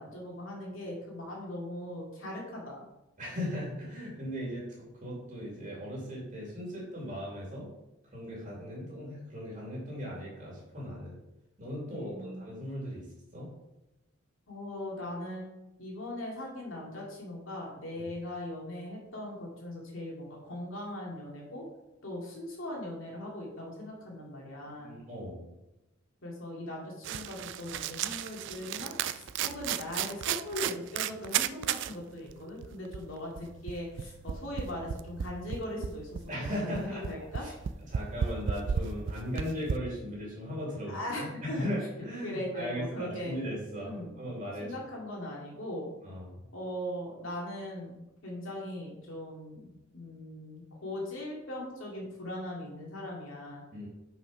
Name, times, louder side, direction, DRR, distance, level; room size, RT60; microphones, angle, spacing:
voice 1, 0.0-2.8 11.9-12.4 14.5-15.5 15.8-21.6 22.0-25.0 26.2-37.5 40.9-41.7 42.0-43.4 43.8-44.2 44.6-45.9 46.5-53.6, left 1 dB, 70° left, -3 dB, 2.6 m, -40 dB
voice 2, 3.2-4.7 4.9-7.7 8.1-11.2 11.6-13.1 13.3-13.5 18.0-18.1 24.6-25.5 36.3-37.1 37.4-37.5 37.9-44.7 46.0-46.4 53.7-53.9, equal, 40° right, -4 dB, 2.6 m, -38 dB
sound 1, 27.0-31.9 32.3-32.4 32.6-39.7, right 8 dB, 60° right, 0.3 m, -34 dB
5.9 x 5.6 x 5.1 m, 0.96 s
head